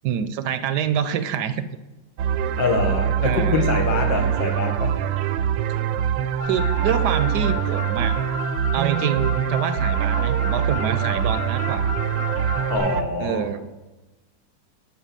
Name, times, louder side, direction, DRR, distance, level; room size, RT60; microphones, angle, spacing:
voice 1, 0.0-1.7 3.2-3.6 4.1-4.3 6.4-8.2 8.7-11.9 13.2-13.7, right 8 dB, 75° right, 12 dB, 1.0 m, -26 dB
sound 1, 2.2-13.0, right 9 dB, 90° right, 1.3 m, -24 dB
voice 2, 2.6-4.9 12.7-13.5, left 3 dB, 85° left, 2 dB, 2.1 m, -24 dB
Car, 6.4-12.8, left 8 dB, 65° left, 2.1 m, -33 dB
10.5 x 4.3 x 7.4 m, 1.1 s
omnidirectional pair, 2.0 m